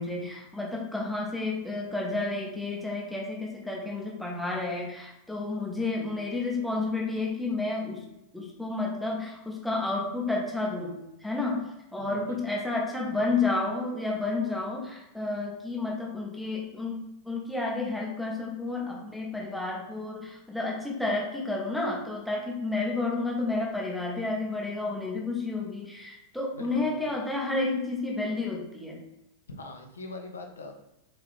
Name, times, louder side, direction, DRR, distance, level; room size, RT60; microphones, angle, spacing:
voice 1, 0.0-8.1 8.3-29.0, left 3 dB, ahead, -3 dB, 0.8 m, -31 dB
voice 2, 12.0-12.4 26.5-27.1 29.5-30.7, left 2 dB, 70° left, 3 dB, 0.5 m, -42 dB
3.8 x 2.8 x 3.3 m, 0.87 s
figure-of-eight pair, 90°, 0 cm